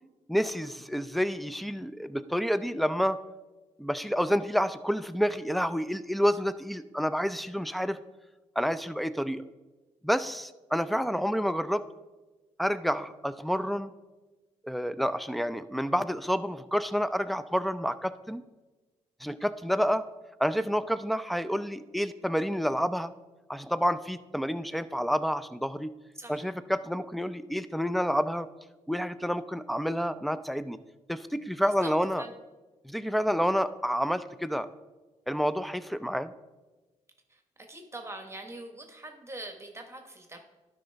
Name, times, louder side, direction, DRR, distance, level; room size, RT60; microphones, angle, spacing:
voice 1, 0.3-3.2 3.8-8.0 8.6-9.4 10.0-11.8 12.6-13.9 14.6-18.4 19.2-20.0 20.4-23.1 23.5-25.9 26.3-28.5 28.9-30.8 31.1-32.2 32.8-34.7 35.3-36.3, equal, ahead, 14 dB, 0.5 m, -29 dB
voice 2, 37.6-40.4, right 2 dB, 20° right, 4 dB, 1.3 m, -43 dB
11.5 x 5.3 x 3.4 m, 1.2 s
supercardioid pair, 55°, 14 cm